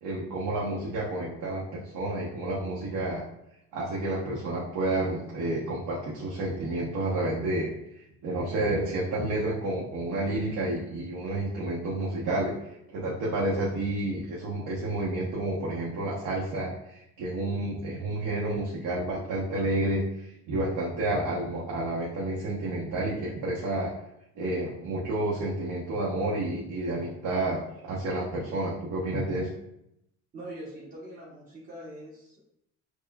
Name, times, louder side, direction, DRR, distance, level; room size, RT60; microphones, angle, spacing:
voice 1, 0.0-3.2 3.7-12.5 12.9-23.9 24.4-29.5, right 2 dB, 85° right, -6 dB, 1.0 m, -30 dB
voice 2, 30.3-32.4, right 1 dB, 25° right, -6 dB, 0.9 m, -43 dB
6.5 x 2.3 x 2.2 m, 0.80 s
cardioid pair, 150°, 29 cm